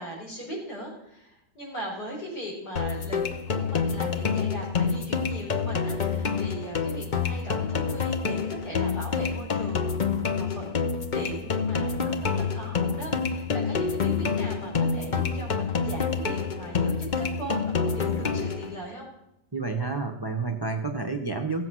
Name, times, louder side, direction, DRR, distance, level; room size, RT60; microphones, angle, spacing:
voice 1, 0.0-3.2 3.5-19.1, right 1 dB, 50° left, -3 dB, 5.1 m, -39 dB
sound 1, 2.8-18.8, left 5 dB, 85° left, 0.4 m, -27 dB
voice 2, 19.5-21.7, right 3 dB, 25° right, 5 dB, 0.5 m, -29 dB
16.5 x 7.7 x 6.1 m, 0.85 s
omnidirectional pair, 2.1 m